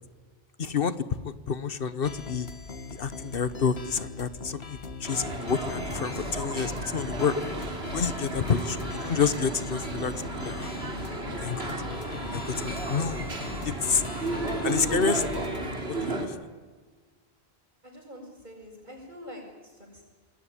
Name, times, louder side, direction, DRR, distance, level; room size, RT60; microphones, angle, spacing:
voice 1, 0.6-2.5 2.9-7.3 7.9-10.7 11.4-11.7 12.3-13.2 13.6-14.0 14.6-15.2 16.0-16.5, left 6 dB, 65° left, 14 dB, 1.2 m, -29 dB
sound 1, 2.0-15.8, left 4 dB, 85° left, 1.8 m, -40 dB
sound 2, 5.1-16.3, right 2 dB, 80° right, 3.7 m, -33 dB
voice 2, 8.5-8.9 14.3-14.8 17.8-20.0, equal, 50° right, -6 dB, 6.5 m, -46 dB
26.5 x 20.0 x 10.0 m, 1.4 s
omnidirectional pair, 1.0 m